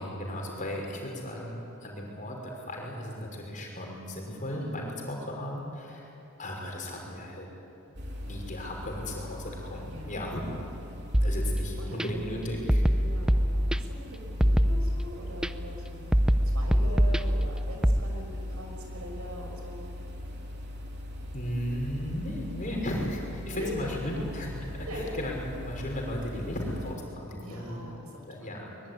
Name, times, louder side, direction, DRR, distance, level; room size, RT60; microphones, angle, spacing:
voice 1, 0.0-6.1 6.4-7.5 8.3-10.4 11.2-12.8 21.3-25.3 25.6-27.8 28.3-28.7, left 1 dB, 35° left, -1 dB, 5.8 m, -35 dB
voice 2, 4.6-4.9 9.8-10.2 11.8-12.7 13.0-20.0 22.9-23.1 23.5-24.3 24.8-25.2 27.4-28.9, equal, 75° right, 2 dB, 6.2 m, -42 dB
sound 1, 7.9-26.9, left 1 dB, 50° right, 3.5 m, -41 dB
sound 2, 11.1-12.1 12.7-14.0 14.4-15.5 16.1-18.0, equal, 5° right, 0.6 m, -24 dB
23.0 x 21.5 x 9.9 m, 2.9 s
head